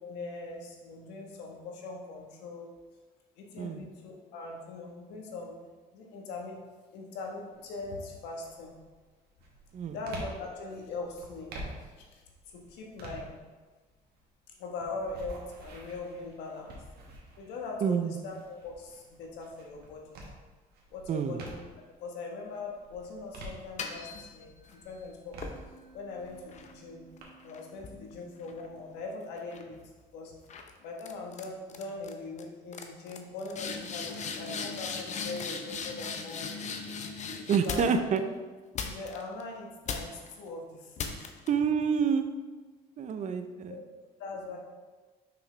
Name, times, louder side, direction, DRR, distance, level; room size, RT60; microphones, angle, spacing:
voice 1, 0.0-2.7 3.4-5.6 5.9-6.6 6.9-8.7 9.9-12.2 12.5-13.4 14.6-16.8 17.4-20.1 20.9-21.6 22.0-25.4 25.9-27.1 27.4-29.8 30.1-30.3 30.8-36.6 37.6-38.3 38.8-41.3 43.7-43.8 44.2-44.6, left 3 dB, 90° left, 0 dB, 1.2 m, -41 dB
voice 2, 3.6-3.9 9.7-10.0 17.8-18.2 21.1-21.4 37.5-38.2 41.5-42.3 43.0-43.8, right 6 dB, 45° right, 9 dB, 0.5 m, -28 dB
sound 1, 7.5-7.9 8.4-21.9 22.4-24.2 24.6-27.2, right 1 dB, 70° right, 1.4 m, -48 dB
sound 2, 23.6-24.8 25.4-29.0 29.4-29.8 30.5-30.7 31.0-31.4 31.7-32.1 32.4-32.5 32.7-38.2 38.8-39.4 39.9-40.3 41.0-41.5, left 5 dB, 45° left, 0.7 m, -39 dB
5.8 x 5.8 x 3.2 m, 1.3 s
cardioid pair, 110°, 17 cm